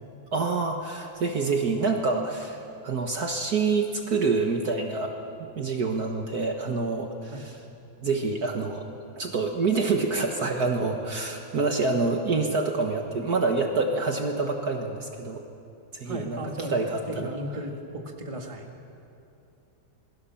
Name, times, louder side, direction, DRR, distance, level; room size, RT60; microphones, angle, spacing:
voice 1, 0.3-5.1 5.4-7.6 8.0-8.9 9.2-15.4 15.9-16.4 16.7-17.3, right 4 dB, 55° right, 3 dB, 1.9 m, -27 dB
voice 2, 16.0-16.8 17.1-18.7, right 1 dB, 15° right, 2 dB, 2.0 m, -35 dB
28.0 x 21.5 x 7.2 m, 2.8 s
omnidirectional pair, 2.1 m